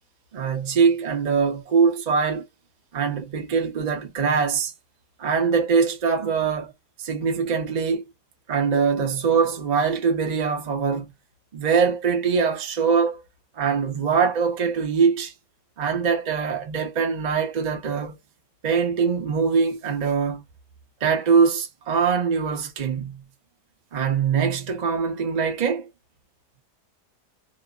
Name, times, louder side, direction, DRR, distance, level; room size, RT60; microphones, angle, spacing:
voice 1, 0.3-2.4 2.9-4.7 5.2-6.7 7.0-8.0 8.5-11.1 11.5-13.2 13.6-15.3 15.8-18.2 18.6-20.4 21.0-23.2 23.9-25.9, right 6 dB, 40° right, 0.7 m, -22 dB
3.0 x 2.1 x 2.3 m
omnidirectional pair, 1.7 m